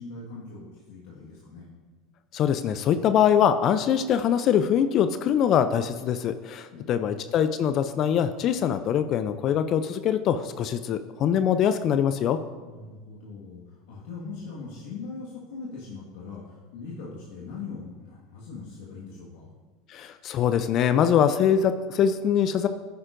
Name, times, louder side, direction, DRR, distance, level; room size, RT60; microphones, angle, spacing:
voice 1, 0.0-1.7 6.7-7.1 12.6-19.4, left 4 dB, 70° left, -5 dB, 1.7 m, -40 dB
voice 2, 2.3-12.4 19.9-22.7, left 8 dB, 50° left, 11 dB, 0.5 m, -23 dB
10.0 x 9.4 x 2.6 m, 1.4 s
hypercardioid pair, 85°, 0 cm